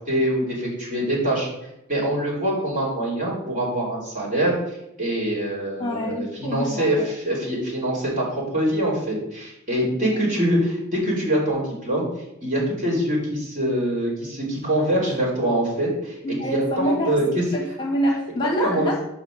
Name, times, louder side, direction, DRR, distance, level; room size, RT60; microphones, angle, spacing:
voice 1, 0.0-1.5 1.9-8.2 8.5-12.0 12.4-17.4 18.6-18.9, right 1 dB, 40° right, -5 dB, 3.3 m, -24 dB
voice 2, 5.8-7.1 10.0-10.2 16.2-17.1 17.5-19.0, equal, 20° left, 0 dB, 1.2 m, -26 dB
6.0 x 5.0 x 6.3 m, 0.86 s
head